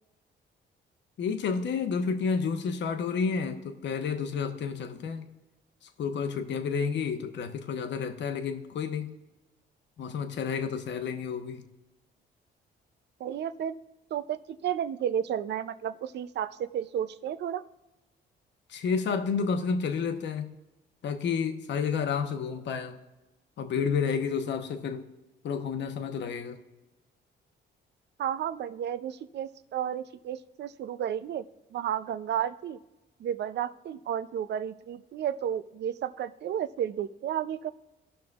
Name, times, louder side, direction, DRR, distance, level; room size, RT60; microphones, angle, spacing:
voice 1, 1.2-5.3 5.8-9.2 10.0-11.6 18.7-20.5 21.0-23.0 23.6-25.1 25.4-26.6, left 6 dB, 65° left, 6 dB, 1.0 m, -30 dB
voice 2, 13.2-13.8 14.1-17.6 28.2-31.4 31.7-32.8 33.2-37.7, right 9 dB, 60° right, 13 dB, 0.5 m, -32 dB
18.0 x 6.1 x 2.4 m, 1.0 s
cardioid pair, 90°, 20 cm